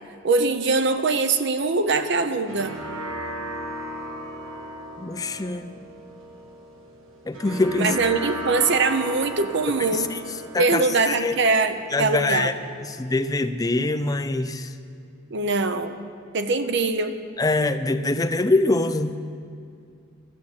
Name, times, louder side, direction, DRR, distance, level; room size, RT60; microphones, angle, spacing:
voice 1, 0.2-2.8 7.8-10.1 10.6-12.5 15.3-16.1 16.3-17.2, right 3 dB, 60° right, 9 dB, 0.7 m, -22 dB
sound 1, 2.2-13.1, right 1 dB, 85° right, 1.5 m, -36 dB
voice 2, 5.0-5.8 7.3-8.0 9.9-10.2 10.5-11.3 11.9-14.7 17.4-19.2, left 2 dB, 20° left, 9 dB, 0.4 m, -24 dB
13.0 x 7.1 x 7.9 m, 2.4 s
head